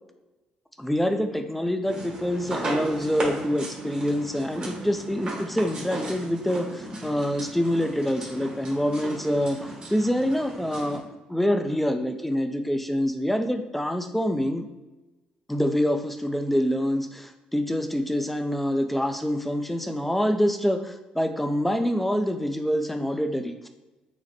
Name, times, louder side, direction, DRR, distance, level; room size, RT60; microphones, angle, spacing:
voice 1, 0.8-11.0 11.3-14.7 15.5-23.7, equal, 5° left, 6 dB, 0.5 m, -26 dB
sound 1, 1.9-11.0, right 1 dB, 35° right, 1.5 m, -36 dB
5.8 x 2.1 x 4.2 m, 1.1 s
cardioid pair, 90°, 3 cm